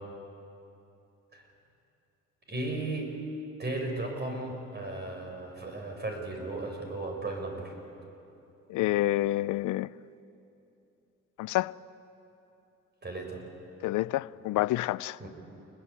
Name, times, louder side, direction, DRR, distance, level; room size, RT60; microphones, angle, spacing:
voice 1, 2.5-3.1 3.6-7.7 13.0-13.4 15.2-15.3, right 2 dB, 35° right, 6.6 m, -35 dB
voice 2, 8.7-9.9 11.4-11.7 13.8-15.2, left 16 dB, 80° left, 0.5 m, -28 dB
28.0 x 21.0 x 8.5 m
cardioid pair, 90°, 30 cm